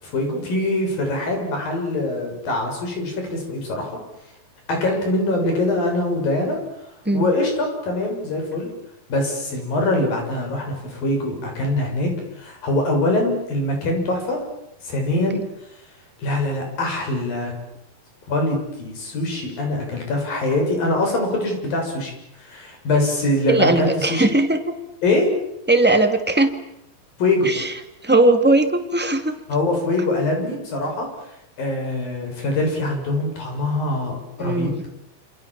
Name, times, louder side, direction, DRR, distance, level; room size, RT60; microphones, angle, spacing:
voice 1, 0.0-4.0 4.7-6.6 7.1-8.7 9.1-14.4 14.8-15.4 16.2-17.5 18.3-22.1 22.4-24.3 25.0-25.4 27.2-27.5 29.5-31.3 31.6-34.7, left 2 dB, 70° left, 3 dB, 8.5 m, -23 dB
voice 2, 23.5-24.7 25.7-26.6 27.4-27.7 28.0-29.3 34.4-34.8, right 2 dB, 5° right, 6 dB, 1.3 m, -18 dB
28.0 x 28.0 x 7.5 m, 0.79 s
omnidirectional pair, 4.2 m